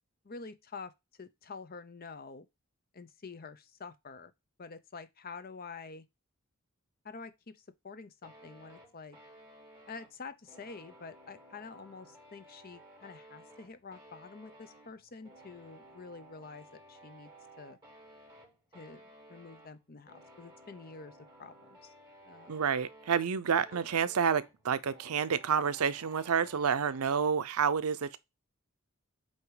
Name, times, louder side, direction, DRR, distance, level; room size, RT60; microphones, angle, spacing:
voice 1, 0.2-0.9 1.2-2.5 2.9-4.3 4.6-6.1 7.0-9.2 9.9-17.3 17.6-17.8 18.7-19.0 19.3-21.9 22.3-22.6 23.7-23.8, left 4 dB, 45° left, 0.7 m, -47 dB
sound 1, 8.2-27.4, right 1 dB, 20° right, 2.4 m, -56 dB
voice 2, 22.5-28.2, right 6 dB, 85° right, 0.6 m, -29 dB
8.0 x 2.9 x 4.8 m
head